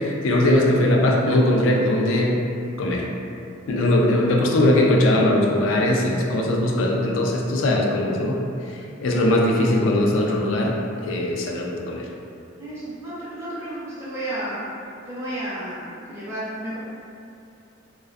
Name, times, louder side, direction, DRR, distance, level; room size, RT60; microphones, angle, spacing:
voice 1, 0.0-2.4 2.8-3.1 3.7-8.4 8.7-10.7 11.0-12.0, left 1 dB, 90° left, -1 dB, 0.4 m, -20 dB
voice 2, 12.6-14.6 15.1-16.8, right 1 dB, 15° right, -11 dB, 0.5 m, -32 dB
2.5 x 2.2 x 2.3 m, 2.5 s
head